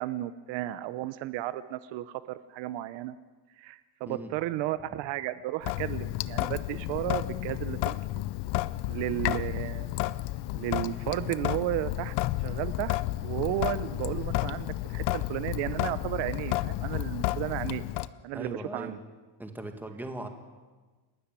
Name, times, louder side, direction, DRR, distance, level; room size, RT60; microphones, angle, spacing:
voice 1, 0.0-3.1 3.6-8.2 8.9-9.9 10.5-13.0 13.2-17.8 18.2-19.0, right 15 dB, 65° right, 14 dB, 0.9 m, -33 dB
Sink (filling or washing) / Drip, 5.6-18.1, left 17 dB, 60° left, 0.8 m, -31 dB
voice 2, 18.3-19.0 19.4-20.3, right 1 dB, 5° right, 5 dB, 1.9 m, -38 dB
29.5 x 13.0 x 9.0 m, 1.3 s
cardioid pair, 160°, 47 cm